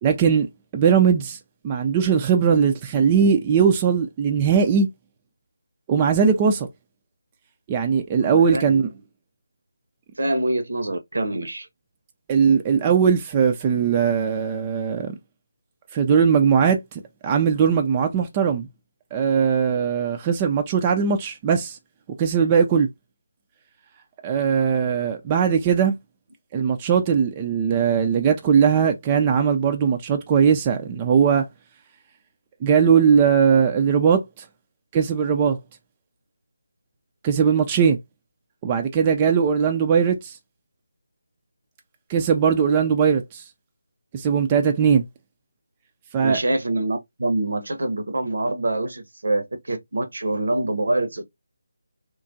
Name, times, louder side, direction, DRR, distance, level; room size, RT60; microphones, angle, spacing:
voice 1, 0.0-0.5 0.7-1.4 1.6-4.9 5.9-6.7 7.7-8.9 12.3-15.2 15.9-18.7 19.1-21.8 22.2-22.9 24.2-26.0 26.5-31.5 32.6-34.4 34.9-35.6 37.2-38.0 38.6-40.4 42.1-43.4 44.1-45.0 46.1-46.4, right 7 dB, 20° right, 0.3 m, -19 dB
voice 2, 8.2-8.8 10.2-11.7 46.2-51.2, right 2 dB, 70° right, 0.7 m, -25 dB
2.9 x 2.4 x 2.6 m
figure-of-eight pair, 160°, 0 cm